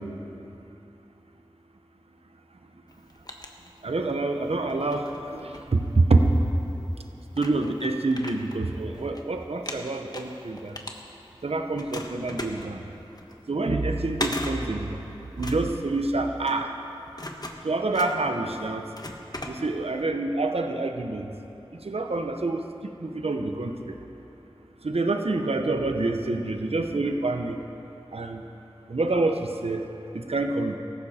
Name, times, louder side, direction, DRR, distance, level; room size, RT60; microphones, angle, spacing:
sound 1, 2.9-4.2 4.7-6.3 6.9-7.0 7.3-9.2 9.5-11.4 11.7-20.0, left 1 dB, 40° left, 1.4 m, -38 dB
voice 1, 3.8-6.2 7.4-10.7 11.4-12.8 13.5-14.9 15.4-16.7 17.6-18.8 19.5-21.3 21.8-22.6 23.0-23.7 24.8-27.6 28.1-28.4 28.9-29.8 30.1-30.8, right 2 dB, 90° right, 5 dB, 0.9 m, -26 dB
18.0 x 15.0 x 4.4 m, 2.8 s
wide cardioid pair, 45°, 10 cm